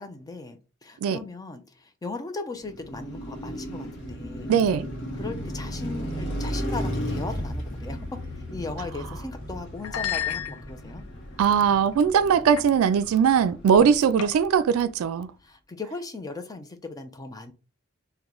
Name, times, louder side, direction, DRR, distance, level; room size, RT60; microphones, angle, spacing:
voice 1, 0.0-4.5 5.2-8.2 8.5-11.0 13.7-13.9 15.4-17.5, left 3 dB, 20° left, 0.4 m, -37 dB
Car passing by, 2.6-14.8, equal, 60° left, 0.9 m, -35 dB
voice 2, 4.5-4.9 11.4-15.3, right 7 dB, 90° right, 0.3 m, -20 dB
sound 1, 8.9-9.1 9.8-11.0 11.6-11.9 12.6-12.7 13.0-13.2 14.2-14.6, left 10 dB, 85° left, 0.4 m, -33 dB
3.0 x 2.2 x 3.7 m
head